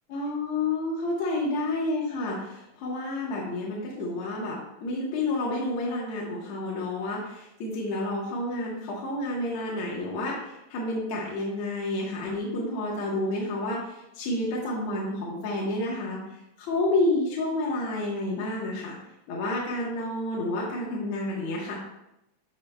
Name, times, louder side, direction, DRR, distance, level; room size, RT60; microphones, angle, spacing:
voice 1, 0.1-16.2 16.6-19.0 19.3-21.8, left 2 dB, 75° left, -4 dB, 2.4 m, -30 dB
11.0 x 5.0 x 2.3 m, 0.86 s
omnidirectional pair, 3.3 m